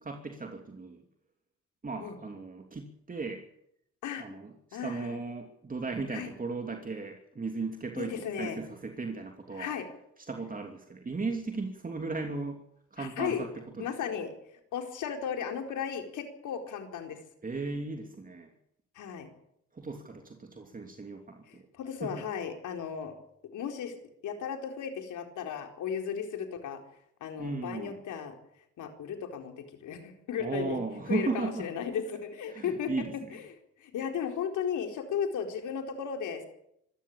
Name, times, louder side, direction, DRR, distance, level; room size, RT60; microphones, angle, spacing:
voice 1, 0.0-1.0 1.8-3.5 4.2-9.7 10.3-12.6 12.9-13.9 17.4-18.5 19.7-21.6 22.0-22.2 27.4-28.0 30.4-31.7 32.5-33.4, right 3 dB, 30° right, 3 dB, 2.9 m, -36 dB
voice 2, 4.7-5.2 6.1-6.3 8.0-8.6 9.6-9.9 13.0-13.4 13.8-14.3 14.7-17.2 18.9-19.3 21.5-23.1 23.5-24.0 24.2-26.8 27.2-28.4 28.8-30.8 31.1-33.0 33.3-33.5 33.8-36.5, left 7 dB, 80° left, 4 dB, 4.3 m, -35 dB
25.5 x 13.5 x 8.7 m, 0.75 s
cardioid pair, 90°, 30 cm